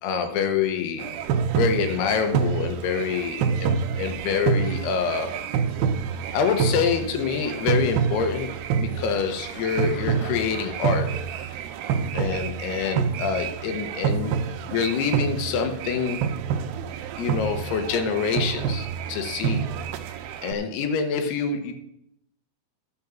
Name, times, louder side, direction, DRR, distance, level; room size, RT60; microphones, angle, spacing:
voice 1, 0.0-1.1 1.5-5.4 6.3-11.5 12.1-14.4 14.7-16.2 17.2-19.7 20.4-21.7, left 6 dB, 85° left, 7 dB, 3.2 m, -26 dB
sound 1, 1.0-20.5, right 7 dB, 75° right, 2.3 m, -27 dB
11.5 x 6.2 x 7.2 m, 0.81 s
omnidirectional pair, 4.5 m